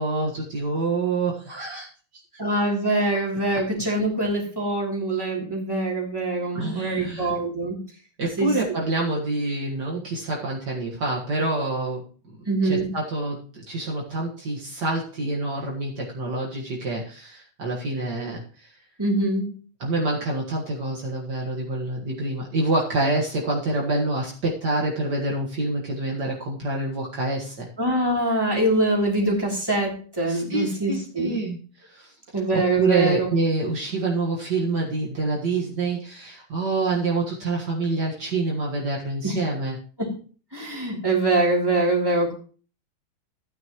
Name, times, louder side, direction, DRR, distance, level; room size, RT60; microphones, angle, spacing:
voice 1, 0.0-1.9 6.5-7.3 8.2-12.0 12.6-18.7 19.8-27.7 30.3-31.6 31.9-32.1 32.5-39.8, right 2 dB, 60° right, -2 dB, 2.2 m, -27 dB
voice 2, 2.4-7.8 8.4-8.5 12.5-12.9 19.0-19.5 27.8-31.3 32.3-33.3 39.2-39.4 40.0-40.1 40.5-42.3, right 2 dB, 10° right, -2 dB, 3.1 m, -24 dB
14.0 x 9.5 x 3.1 m, 0.41 s
omnidirectional pair, 2.2 m